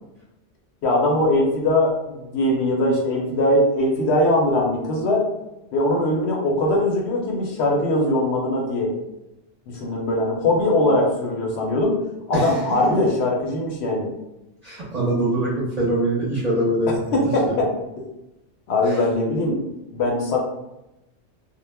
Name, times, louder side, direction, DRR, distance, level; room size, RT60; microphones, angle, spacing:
voice 1, 0.8-5.2 5.7-8.9 9.7-12.0 12.3-14.1 17.1-17.7 18.7-19.6 19.9-20.4, left 1 dB, 70° left, -1 dB, 0.8 m, -21 dB
voice 2, 14.6-17.6 18.8-19.0, right 1 dB, 45° right, -6 dB, 0.6 m, -24 dB
2.2 x 2.0 x 3.2 m, 0.91 s
omnidirectional pair, 1.2 m